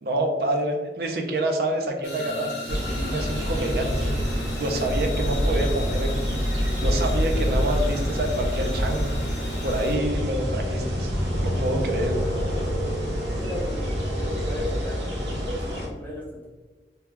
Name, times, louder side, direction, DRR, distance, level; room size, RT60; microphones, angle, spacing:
voice 1, 0.0-11.1 11.4-12.2, right 1 dB, 60° right, 3 dB, 0.5 m, -28 dB
sound 1, 2.0-10.0, left 2 dB, 90° left, 0.8 m, -36 dB
sound 2, 2.7-15.9, equal, 80° right, 0.9 m, -26 dB
voice 2, 13.3-16.5, equal, 10° left, -4 dB, 0.6 m, -37 dB
2.9 x 2.2 x 3.5 m, 1.3 s
head